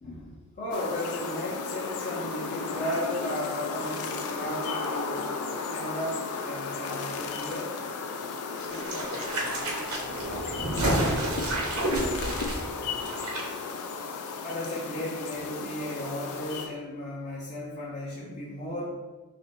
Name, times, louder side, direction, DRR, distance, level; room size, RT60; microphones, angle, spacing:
voice 1, 0.0-5.3 5.7-7.7 14.4-18.9, left 1 dB, 35° left, -7 dB, 0.6 m, -35 dB
sound 1, 0.7-16.7, left 4 dB, 90° left, 0.4 m, -34 dB
voice 2, 8.6-13.4, equal, 55° left, -2 dB, 0.9 m, -44 dB
sound 2, 8.6-13.4 13.7-13.8, right 1 dB, 70° right, 0.8 m, -30 dB
3.0 x 2.5 x 4.3 m, 1.3 s
head